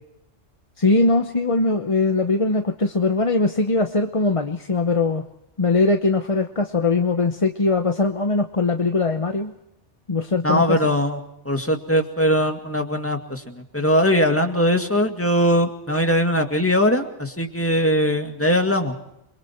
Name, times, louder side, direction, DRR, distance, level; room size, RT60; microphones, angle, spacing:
voice 1, 0.8-5.3 5.6-9.5 10.1-10.8, left 3 dB, 30° left, 5 dB, 1.0 m, -21 dB
voice 2, 10.4-11.2 11.5-19.0, equal, 10° left, 4 dB, 2.0 m, -20 dB
29.5 x 22.5 x 4.5 m, 0.82 s
omnidirectional pair, 1.2 m